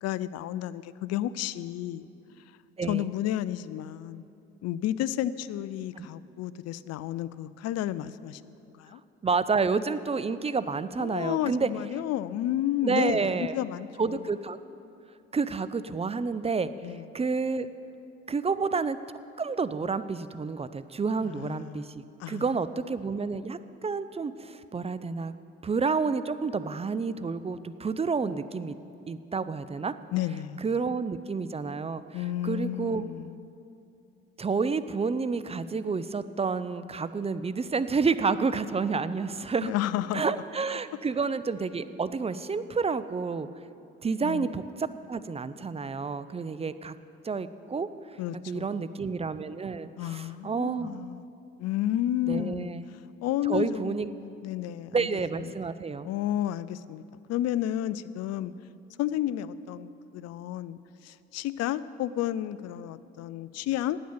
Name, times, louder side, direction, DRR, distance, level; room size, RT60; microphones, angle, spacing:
voice 1, 0.0-2.1 2.9-4.2 4.6-9.0 11.0-14.3 16.8-17.0 21.2-21.9 22.2-22.5 30.1-30.7 32.1-33.4 39.6-40.4 44.2-44.5 48.2-49.0 50.0-51.2 51.6-52.8 53.2-55.1 55.5-55.6 56.0-57.0 57.3-58.5 59.0-64.0, left 12 dB, 55° left, 16 dB, 0.5 m, -32 dB
voice 2, 2.8-3.1 6.0-6.1 9.2-11.7 12.8-13.5 14.0-14.6 15.3-16.7 17.1-17.7 18.3-19.0 19.4-25.3 25.6-28.7 29.1-29.9 30.6-33.1 34.4-39.7 40.1-43.5 44.0-47.0 47.2-47.9 48.3-51.0 52.3-52.9 53.5-54.1 54.9-56.1, right 4 dB, 20° right, 13 dB, 0.5 m, -29 dB
9.3 x 8.2 x 8.6 m, 2.7 s
hypercardioid pair, 50°, 30 cm